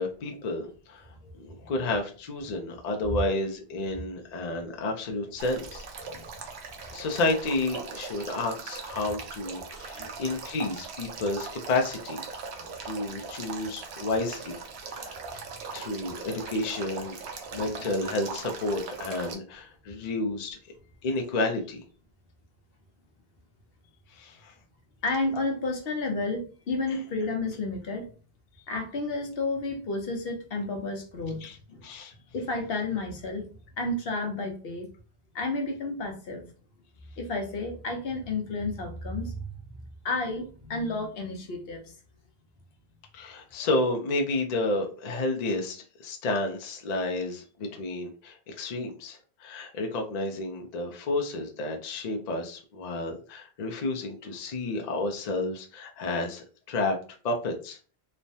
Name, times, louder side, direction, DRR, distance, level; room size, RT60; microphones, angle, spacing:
voice 1, 0.0-1.1 1.4-5.8 6.9-12.2 12.8-14.6 14.9-15.2 15.7-17.2 17.5-20.6 21.0-21.8 24.1-24.5 26.9-27.0 31.4-31.6 31.8-32.1 43.1-57.0 57.2-57.8, left 2 dB, 50° left, 3 dB, 0.5 m, -31 dB
Male speech man speaking / Stream / Trickle dribble, 5.4-19.3, right 5 dB, 80° right, 0.9 m, -40 dB
voice 2, 25.0-28.1 28.7-31.9 32.3-33.5 33.8-34.9 35.3-36.5 37.2-41.9, left 2 dB, 65° left, 3 dB, 0.9 m, -31 dB
3.1 x 2.1 x 2.6 m, 0.37 s
omnidirectional pair, 1.1 m